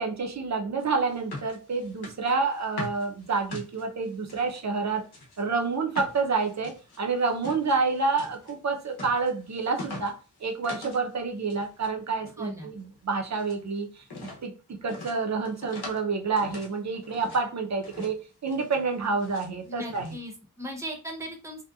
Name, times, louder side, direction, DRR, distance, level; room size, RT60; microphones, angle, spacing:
voice 1, 0.0-5.1 5.4-10.1 10.4-20.2, right 4 dB, 45° right, 0.6 m, -28 dB
sound 1, 0.8-4.6 5.0-11.1 11.3-11.9 12.2-13.6 14.0-14.4 14.9-16.1 16.4-17.4 17.8-18.2 18.5-19.5 19.9-20.1, left 2 dB, 90° left, 0.8 m, -43 dB
voice 2, 12.4-12.7 19.6-21.6, equal, 10° right, 0.7 m, -37 dB
2.7 x 2.1 x 2.3 m
wide cardioid pair, 60°, 38 cm